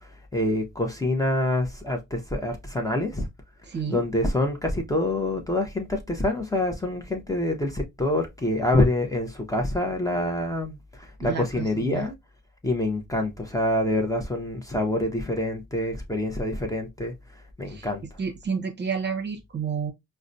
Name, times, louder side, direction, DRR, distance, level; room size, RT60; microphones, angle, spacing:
voice 1, 0.0-3.3 3.9-12.1 12.6-17.1 17.6-18.0, left 1 dB, 10° left, 0.8 m, -26 dB
voice 2, 3.7-4.0 11.2-12.1 17.7-17.9 18.2-19.9, right 6 dB, 35° right, 0.8 m, -30 dB
4.7 x 2.2 x 2.6 m
cardioid pair, 90°, 30 cm